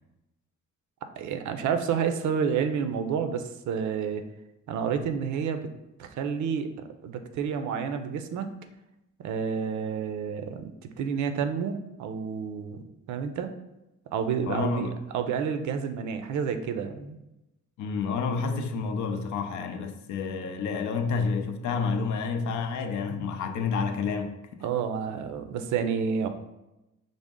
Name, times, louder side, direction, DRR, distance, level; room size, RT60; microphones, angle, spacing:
voice 1, 1.2-4.2 4.7-5.7 6.0-8.5 9.2-12.8 13.1-13.5 14.1-17.2 24.6-26.3, right 6 dB, 70° right, 8 dB, 0.5 m, -29 dB
voice 2, 14.5-15.0 17.8-24.3, left 5 dB, 75° left, 7 dB, 0.5 m, -29 dB
4.9 x 2.0 x 3.6 m, 0.95 s
cardioid pair, 90°, 30 cm